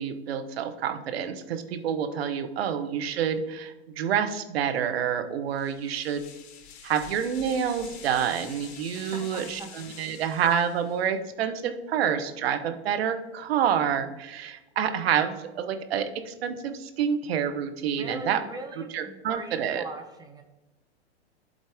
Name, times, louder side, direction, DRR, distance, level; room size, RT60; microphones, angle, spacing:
voice 1, 0.0-6.2 6.8-18.4 18.9-19.8, right 8 dB, 65° right, 9 dB, 1.0 m, -28 dB
sound 1, 5.6-11.1, left 6 dB, 45° left, 1.1 m, -47 dB
voice 2, 8.9-10.0 18.0-20.4, right 2 dB, 10° right, 4 dB, 0.8 m, -41 dB
12.0 x 3.9 x 3.6 m, 1.0 s
hypercardioid pair, 115°, 33 cm